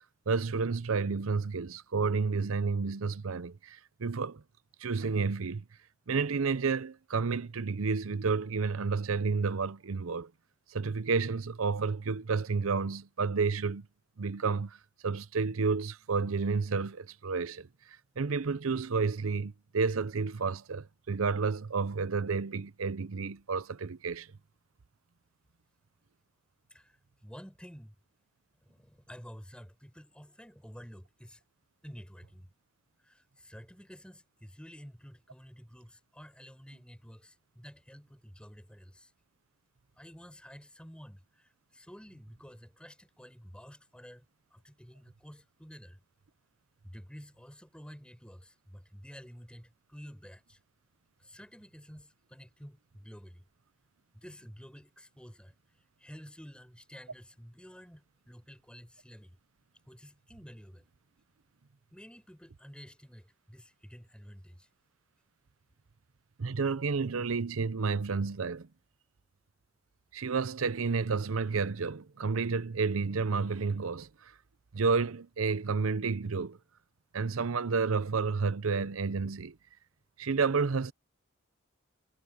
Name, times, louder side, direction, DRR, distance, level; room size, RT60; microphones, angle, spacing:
voice 1, 0.3-4.4 4.8-5.6 6.1-10.3 10.7-13.9 14.2-14.8 15.0-24.3 66.4-68.7 70.1-74.3 74.7-76.6 77.1-79.6 80.2-80.9, right 4 dB, 90° right, 0.7 m, -31 dB
voice 2, 27.2-27.9 28.6-31.4 31.8-32.5 33.0-39.1 40.0-44.2 44.5-46.0 46.8-50.6 51.2-53.4 54.1-55.5 56.0-59.4 59.9-60.9 61.9-64.7, equal, 5° left, 6.5 m, -51 dB
head